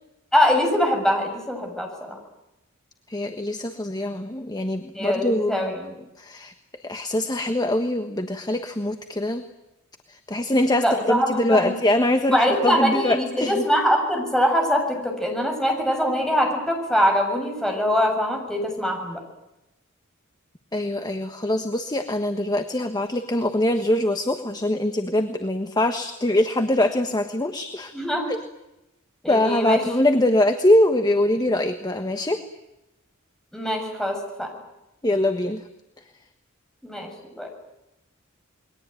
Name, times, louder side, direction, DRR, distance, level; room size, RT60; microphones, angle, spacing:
voice 1, 0.3-2.2 4.9-5.9 10.8-11.7 12.3-19.2 27.9-28.3 29.2-29.8 33.5-34.5 36.8-37.1 37.3-37.5, equal, 5° left, 2 dB, 7.2 m, -23 dB
voice 2, 3.1-5.7 6.2-6.5 6.8-9.4 10.1-13.7 15.6-15.7 20.7-27.9 28.3-28.4 29.3-32.4 35.0-35.6, left 1 dB, 20° left, 7 dB, 1.4 m, -23 dB
29.0 x 22.0 x 9.2 m, 0.94 s
head